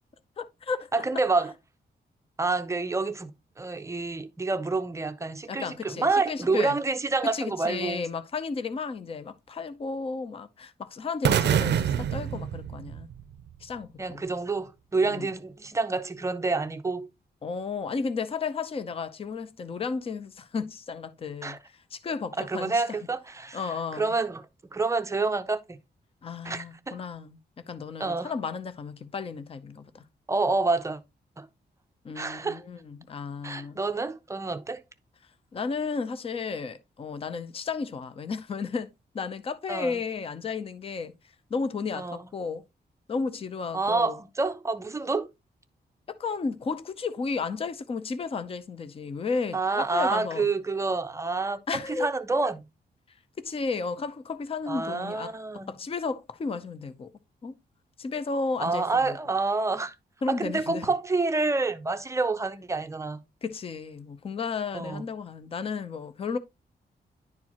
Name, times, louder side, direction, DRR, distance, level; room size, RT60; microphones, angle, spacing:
voice 1, 0.4-0.9 5.5-6.8 7.2-13.1 13.6-14.2 15.0-15.3 17.4-21.6 21.9-22.8 23.5-24.1 26.2-27.4 27.7-30.0 32.0-33.8 35.5-38.9 39.1-41.1 41.5-42.6 43.1-44.2 46.1-50.5 51.7-52.1 53.4-55.3 55.7-57.1 57.4-57.6 58.0-59.2 60.2-60.9 63.4-66.4, left 4 dB, 35° left, 0.6 m, -33 dB
voice 2, 0.9-1.5 2.4-3.3 3.6-8.0 14.0-17.1 21.4-21.6 22.4-24.4 24.7-25.8 26.4-27.0 28.0-28.3 30.3-31.0 31.4-31.5 32.2-32.6 33.4-34.8 39.7-40.0 42.0-42.3 43.7-45.3 49.5-51.6 51.9-52.7 54.7-55.8 58.6-59.9 60.3-63.2 64.7-65.0, right 3 dB, 15° right, 0.5 m, -28 dB
sound 1, 11.2-13.3, right 9 dB, 80° right, 0.5 m, -26 dB
10.5 x 4.4 x 2.9 m
wide cardioid pair, 180°, 17 cm